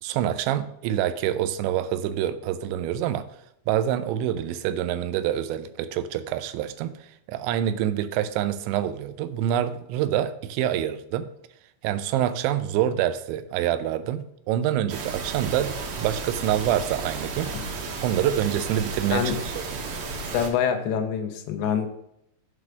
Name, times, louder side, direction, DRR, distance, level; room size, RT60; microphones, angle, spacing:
voice 1, 0.0-3.3 3.7-11.3 11.8-19.5, right 11 dB, 90° right, 12 dB, 3.0 m, -26 dB
sound 1, 14.9-20.5, right 3 dB, 65° right, 2.6 m, -33 dB
voice 2, 20.3-21.9, left 8 dB, 80° left, 6 dB, 3.0 m, -25 dB
7.9 x 4.8 x 6.3 m, 0.77 s
omnidirectional pair, 5.2 m